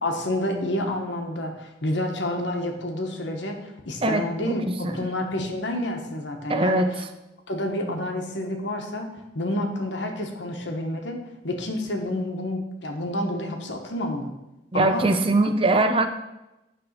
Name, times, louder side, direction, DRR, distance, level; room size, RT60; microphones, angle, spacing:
voice 1, 0.0-6.8 7.5-9.1 9.3-14.3 14.7-15.1 15.4-15.5, left 1 dB, 70° left, 3 dB, 1.1 m, -29 dB
voice 2, 4.0-5.1 6.5-7.1 14.7-16.1, right 2 dB, 30° right, 8 dB, 0.6 m, -22 dB
9.7 x 3.4 x 6.5 m, 0.96 s
head